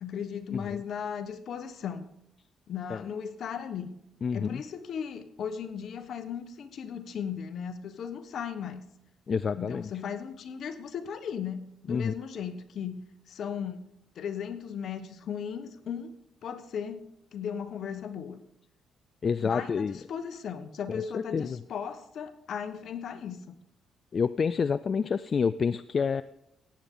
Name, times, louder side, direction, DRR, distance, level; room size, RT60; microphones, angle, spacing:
voice 1, 0.0-2.1 2.7-3.9 4.3-8.8 9.5-13.0 13.3-13.8 14.1-16.1 16.4-18.4 19.4-23.5, left 7 dB, 65° left, 10 dB, 1.1 m, -36 dB
voice 2, 0.5-0.8 2.9-3.0 4.2-4.6 9.3-9.9 11.9-12.1 19.2-20.0 20.9-21.6 24.1-26.2, left 6 dB, 45° left, 15 dB, 0.3 m, -28 dB
17.5 x 8.4 x 3.8 m, 0.82 s
cardioid pair, 90°, 0 cm